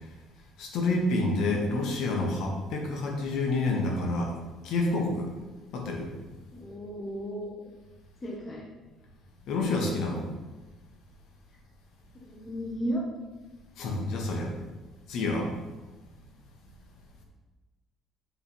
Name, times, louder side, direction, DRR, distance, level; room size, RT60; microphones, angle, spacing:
voice 1, 0.6-4.3 4.6-5.3 5.7-6.1 9.5-10.2 13.8-14.5 15.1-15.5, left 2 dB, 60° left, 1 dB, 1.1 m, -28 dB
voice 2, 6.5-7.5 8.2-8.6 12.1-13.0, equal, 20° left, -2 dB, 0.8 m, -34 dB
7.1 x 3.4 x 4.3 m, 1.2 s
cardioid pair, 175°, 0 cm